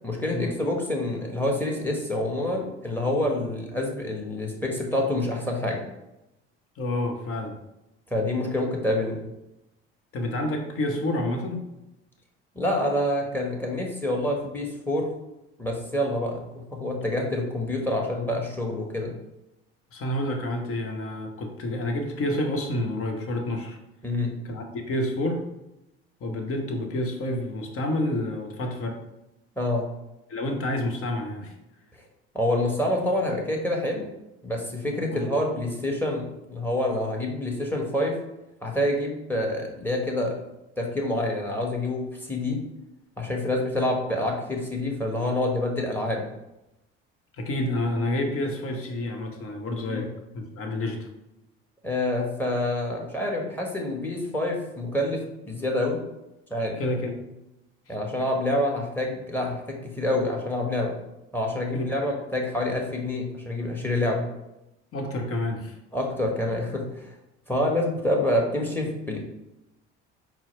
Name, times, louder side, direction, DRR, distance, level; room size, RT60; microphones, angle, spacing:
voice 1, 0.0-5.8 8.1-9.3 12.5-15.1 15.6-19.1 24.0-24.4 29.6-29.9 32.3-34.1 34.4-38.1 38.6-40.4 40.8-42.6 43.2-46.2 49.8-50.0 51.8-56.0 56.5-56.8 57.9-61.0 61.3-64.3 65.9-67.1 67.5-69.2, left 1 dB, 5° left, 0 dB, 1.2 m, -27 dB
voice 2, 6.8-7.6 10.1-11.7 19.9-23.8 24.4-25.4 26.2-29.0 30.3-31.5 35.0-35.2 47.4-51.1 56.8-57.2 57.9-58.0 61.7-62.1 64.9-65.8, left 1 dB, 45° left, 3 dB, 1.0 m, -29 dB
4.5 x 2.0 x 4.3 m, 0.89 s
hypercardioid pair, 70°, 31 cm